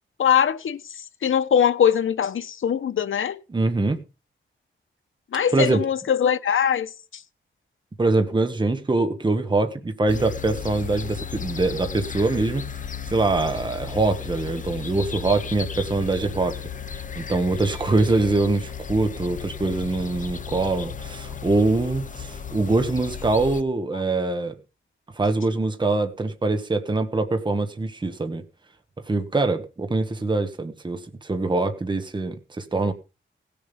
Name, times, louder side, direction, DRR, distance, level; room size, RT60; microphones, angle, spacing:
voice 1, 0.2-0.8 1.2-3.4 5.3-6.9, left 8 dB, 80° left, 1.0 m, -21 dB
voice 2, 3.5-4.0 5.5-5.9 8.0-12.7 13.0-16.6 16.9-24.5 25.1-28.4 29.1-32.9, right 3 dB, 25° right, 1.3 m, -23 dB
sound 1, 10.1-23.6, left 7 dB, 40° left, 0.8 m, -35 dB
18.0 x 7.0 x 5.4 m
wide cardioid pair, 165°, 20 cm